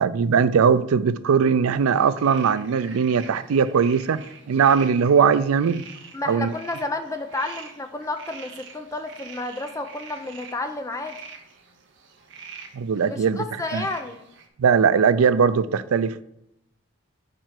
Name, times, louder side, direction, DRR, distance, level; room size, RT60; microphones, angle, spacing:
voice 1, 0.0-4.2 4.5-5.8 6.3-6.5 12.7-13.4 13.7-13.9 14.6-16.2, right 6 dB, 85° right, 0.4 m, -20 dB
sound 1, 1.8-14.5, right 5 dB, 55° right, 0.8 m, -45 dB
voice 2, 6.1-11.2 13.0-14.2, left 2 dB, 15° left, 0.5 m, -31 dB
4.9 x 4.5 x 5.8 m
head